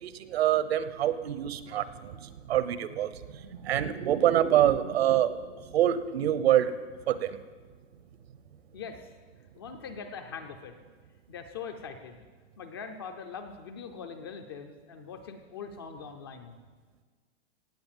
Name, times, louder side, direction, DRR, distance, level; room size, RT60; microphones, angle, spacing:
voice 1, 0.0-6.7 7.1-7.4, right 11 dB, 55° right, 13 dB, 1.0 m, -26 dB
voice 2, 8.7-9.1 9.6-10.7 11.3-12.3 12.6-16.6, left 6 dB, 20° left, 6 dB, 0.5 m, -42 dB
17.5 x 7.8 x 7.4 m, 1.5 s
hypercardioid pair, 170°, 36 cm